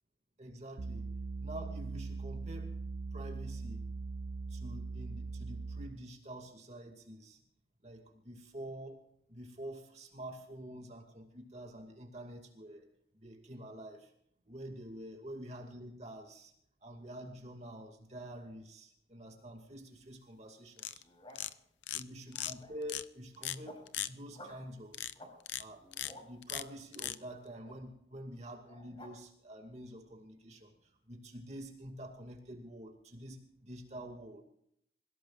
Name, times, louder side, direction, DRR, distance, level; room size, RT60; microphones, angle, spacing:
voice 1, 0.4-1.1 1.4-2.7 3.1-3.8 4.5-7.4 7.8-9.0 9.3-12.9 13.1-14.1 14.5-16.5 16.8-21.0 21.9-25.1 25.6-25.9 26.2-34.4, right 1 dB, 35° right, 2 dB, 2.5 m, -47 dB
sound 1, 0.8-6.1, right 4 dB, 65° right, 0.6 m, -41 dB
sound 2, 20.8-21.0 21.4-21.5 21.8-22.0 22.3-22.5 22.9-23.0 23.4-23.6 23.9-24.1 24.9-25.1 25.5-25.6 25.9-26.1 26.4-26.6 26.9-27.2, left 13 dB, 80° left, 0.7 m, -37 dB
sound 3, 20.9-21.6 22.3-22.9 23.3-23.9 24.3-24.6 25.1-25.3 25.7-26.3 27.6-27.8 28.6-29.1, left 1 dB, 30° left, 5.1 m, -53 dB
27.5 x 17.0 x 2.6 m, 0.71 s
head